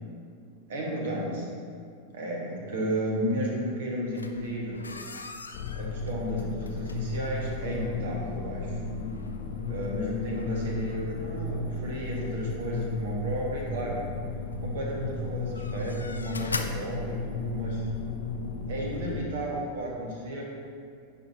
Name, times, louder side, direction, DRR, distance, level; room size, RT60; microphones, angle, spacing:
voice 1, 0.7-1.5 2.1-4.8 5.8-8.8 9.7-14.0 14.6-17.8 18.7-20.4, equal, 55° right, -2 dB, 1.5 m, -33 dB
sound 1, 4.1-17.7, left 3 dB, 80° left, 0.4 m, -43 dB
sound 2, 5.5-19.2, left 3 dB, 45° left, 0.7 m, -34 dB
10.0 x 4.7 x 2.8 m, 2.4 s
figure-of-eight pair, 90°, 0 cm